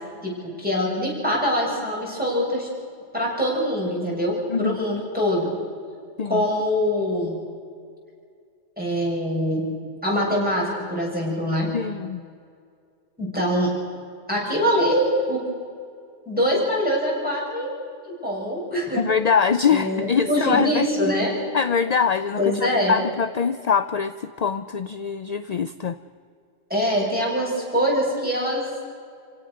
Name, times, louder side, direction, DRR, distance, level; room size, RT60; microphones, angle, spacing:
voice 1, 0.2-2.7 3.1-5.5 6.2-7.4 8.8-9.6 10.0-11.7 13.2-13.7 14.3-15.4 16.3-19.0 19.7-21.3 22.4-23.0 26.7-28.6, equal, 5° right, -4 dB, 7.7 m, -24 dB
voice 2, 11.7-12.2 19.0-20.9 21.5-26.0, left 6 dB, 45° left, 11 dB, 0.5 m, -23 dB
29.0 x 17.0 x 6.6 m, 2.3 s
omnidirectional pair, 1.3 m